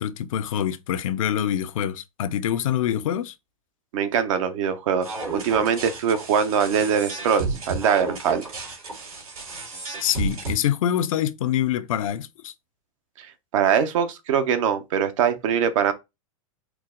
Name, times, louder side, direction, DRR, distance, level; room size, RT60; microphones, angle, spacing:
voice 1, 0.0-3.3 10.0-12.5, left 10 dB, 70° left, 0.5 m, -25 dB
voice 2, 3.9-8.4 13.2-15.9, right 7 dB, 65° right, 0.8 m, -23 dB
sound 1, 5.0-10.5, right 3 dB, 90° right, 2.4 m, -32 dB
4.6 x 2.0 x 3.7 m
hypercardioid pair, 110°, 18 cm